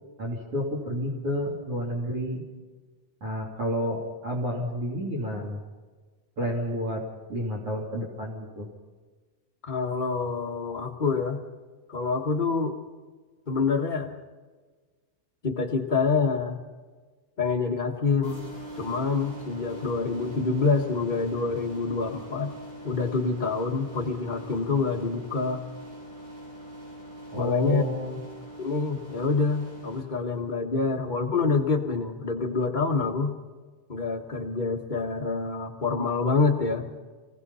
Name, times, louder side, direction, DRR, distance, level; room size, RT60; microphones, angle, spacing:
voice 1, 0.2-2.4 3.2-5.6 6.4-7.0 7.3-8.7 27.3-28.2, equal, 45° right, 0 dB, 3.9 m, -30 dB
voice 2, 9.6-11.4 11.9-12.8 13.5-14.1 15.4-16.6 17.4-18.4 18.7-22.5 22.8-25.6 27.3-27.8 28.6-33.3 33.9-36.8, left 4 dB, 65° left, 1 dB, 0.4 m, -26 dB
sound 1, 18.2-30.0, right 1 dB, 65° right, 6.9 m, -42 dB
27.0 x 19.5 x 5.6 m, 1.4 s
omnidirectional pair, 3.6 m